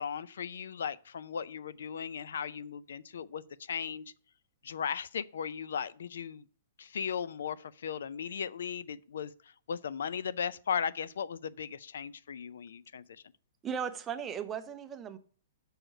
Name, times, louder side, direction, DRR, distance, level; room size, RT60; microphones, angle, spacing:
voice 1, 0.0-3.4 3.7-4.1 4.6-6.4 6.8-9.3 9.7-13.2, left 7 dB, 80° left, 0.4 m, -37 dB
voice 2, 13.6-15.2, right 7 dB, 10° right, 0.4 m, -36 dB
6.3 x 4.7 x 6.3 m
hypercardioid pair, 175°, 0 cm